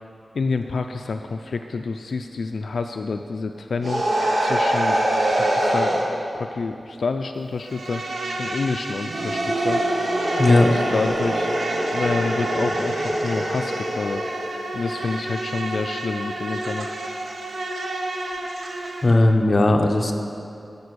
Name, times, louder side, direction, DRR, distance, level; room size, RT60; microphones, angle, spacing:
voice 1, 0.3-4.0 4.4-5.0 5.3-6.0 6.3-8.0 8.4-9.8 10.5-11.5 11.9-14.2 14.7-16.9, left 4 dB, 80° left, 6 dB, 0.3 m, -28 dB
sound 1, 3.8-6.1 9.1-14.7, right 1 dB, 65° right, 1.4 m, -24 dB
Insect, 7.6-19.1, right 2 dB, 85° right, 0.9 m, -31 dB
voice 2, 10.4-10.7 19.0-20.1, left 2 dB, 40° left, 3 dB, 0.8 m, -17 dB
13.0 x 5.1 x 6.2 m, 2.6 s
wide cardioid pair, 115°, 0 cm